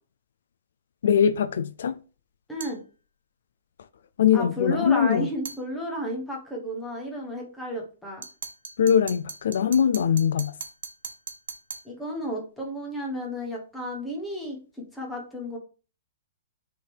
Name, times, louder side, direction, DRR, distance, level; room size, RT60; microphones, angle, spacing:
voice 1, 1.0-2.0 4.2-5.3 8.8-10.5, left 8 dB, 60° left, 0.4 m, -22 dB
voice 2, 2.5-2.8 4.3-8.2 11.8-14.6 14.9-15.6, equal, 5° left, 1.0 m, -32 dB
sound 1, 2.6-2.9 5.4-5.7 8.2-11.9, right 6 dB, 90° right, 1.2 m, -39 dB
6.5 x 3.5 x 4.5 m
hypercardioid pair, 180°, 0 cm